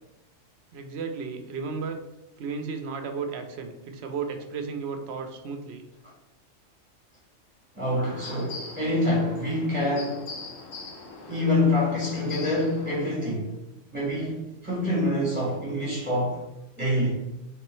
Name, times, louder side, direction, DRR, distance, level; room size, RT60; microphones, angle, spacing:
voice 1, 0.7-2.0 2.4-5.8, right 5 dB, 65° right, 0.8 m, -34 dB
voice 2, 7.7-10.3 11.3-13.5 13.9-16.4 16.8-17.1, left 1 dB, 10° right, 1.1 m, -26 dB
sound 1, 8.1-13.2, left 4 dB, 80° left, 1.0 m, -42 dB
4.1 x 3.6 x 3.0 m
omnidirectional pair, 1.3 m